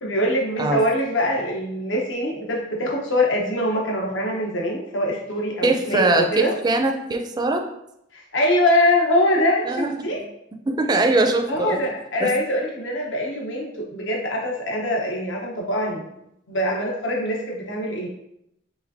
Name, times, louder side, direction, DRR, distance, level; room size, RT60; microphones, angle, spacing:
voice 1, 0.0-6.5 8.1-10.2 11.5-16.1 16.5-18.1, left 1 dB, 80° left, -2 dB, 1.0 m, -23 dB
voice 2, 5.6-7.6 9.7-10.2 10.7-11.8 12.2-12.3, right 2 dB, 20° right, 4 dB, 0.4 m, -22 dB
5.0 x 3.3 x 2.7 m, 0.80 s
head